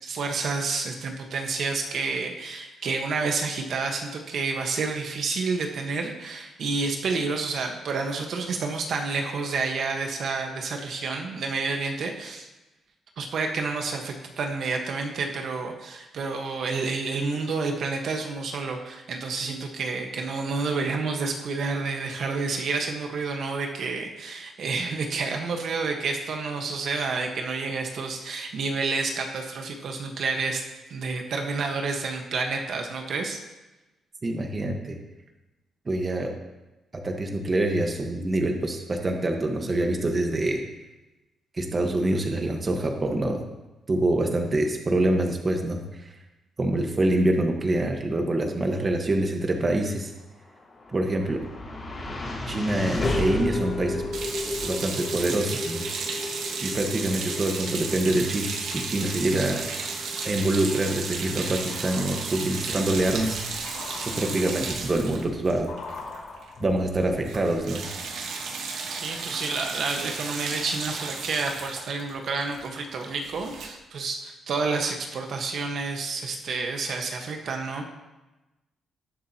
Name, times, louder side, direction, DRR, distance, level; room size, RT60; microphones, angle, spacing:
voice 1, 0.0-12.5 13.2-30.6 30.9-33.4 68.9-77.8, right 4 dB, 60° right, 3 dB, 1.3 m, -29 dB
voice 2, 34.2-35.0 35.8-36.3 37.0-40.6 41.5-43.4 43.9-46.1 46.6-50.1 50.9-51.4 52.5-54.0 54.6-55.8 56.6-59.6 60.2-63.7 64.0-65.7 66.6-67.8, right 1 dB, 30° right, 3 dB, 1.3 m, -25 dB
sound 1, 50.4-62.8, left 2 dB, 25° left, 3.7 m, -34 dB
sound 2, 54.1-66.5 66.8-67.0 67.2-73.7, right 4 dB, 80° right, 1.5 m, -34 dB
sound 3, 59.3-59.4 59.9-67.7 68.0-68.1, left 3 dB, 65° left, 4.1 m, -43 dB
19.0 x 7.4 x 2.9 m, 1.1 s
cardioid pair, 120°, 0 cm